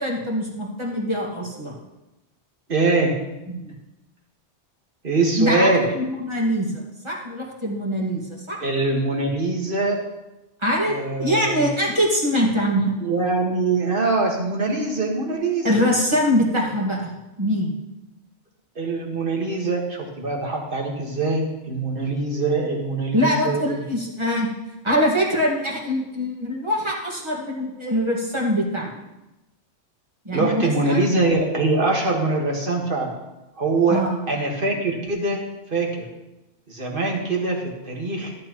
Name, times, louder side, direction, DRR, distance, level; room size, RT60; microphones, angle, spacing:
voice 1, 0.0-1.7 3.5-3.8 5.4-8.6 10.6-13.0 15.6-17.1 17.4-17.7 23.1-24.5 24.8-28.9 30.2-31.0 33.9-34.2, equal, 25° right, -2 dB, 1.8 m, -23 dB
voice 2, 2.7-3.1 5.0-5.9 8.6-10.0 10.8-11.7 13.0-15.8 18.7-23.7 30.3-33.1 33.6-35.4 35.7-36.0 36.7-38.3, right 3 dB, 45° right, 0 dB, 1.8 m, -23 dB
14.0 x 8.3 x 3.0 m, 0.99 s
omnidirectional pair, 1.3 m